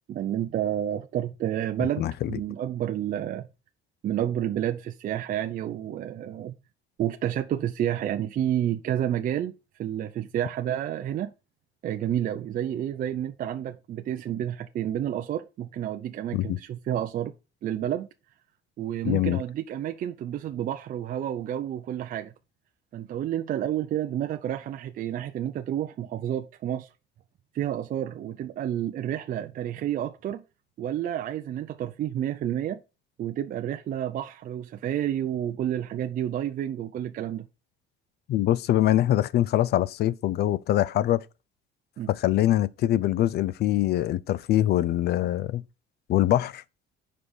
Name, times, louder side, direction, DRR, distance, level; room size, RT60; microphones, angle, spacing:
voice 1, 0.1-3.5 4.0-6.5 7.0-9.5 9.8-11.3 11.8-17.3 17.6-18.1 18.8-22.3 22.9-26.9 27.5-30.4 30.8-32.8 33.2-37.5 42.0-42.1, right 11 dB, 40° right, 0.6 m, -30 dB
voice 2, 2.0-2.4 16.3-16.6 19.0-19.4 38.3-41.2 42.1-45.6 46.1-46.6, left 13 dB, 50° left, 0.5 m, -23 dB
7.4 x 5.1 x 6.2 m
cardioid pair, 170°, 21 cm